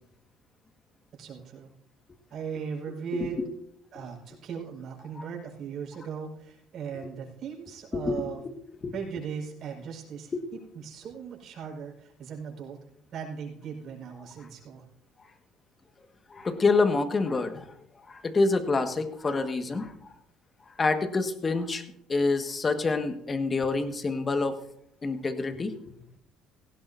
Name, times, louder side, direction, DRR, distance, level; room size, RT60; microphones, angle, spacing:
voice 1, 1.2-1.7 2.3-3.4 3.9-8.4 8.9-12.8 13.1-14.8, right 7 dB, 60° right, -2 dB, 5.4 m, -38 dB
voice 2, 3.1-3.5 7.9-8.5 8.8-8.9 10.3-10.4 16.3-17.7 18.1-19.9 20.8-21.8 22.1-24.6 25.0-25.7, left 3 dB, 30° left, 7 dB, 1.8 m, -27 dB
18.0 x 16.5 x 2.8 m, 0.74 s
supercardioid pair, 70°, 0 cm